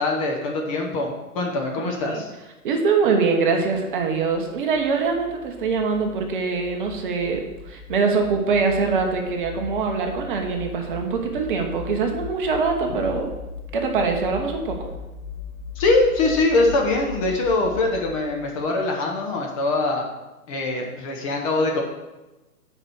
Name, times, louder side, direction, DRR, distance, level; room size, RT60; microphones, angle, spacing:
voice 1, 0.0-2.3 15.7-20.1 20.5-21.8, left 2 dB, 25° left, 0 dB, 0.9 m, -23 dB
voice 2, 1.8-2.2 2.6-13.3 13.7-14.9, right 4 dB, 35° right, 3 dB, 1.2 m, -23 dB
sound 1, 3.5-18.8, left 6 dB, 65° left, 1.6 m, -39 dB
7.8 x 4.8 x 6.3 m, 1.1 s
hypercardioid pair, 140°, 45 cm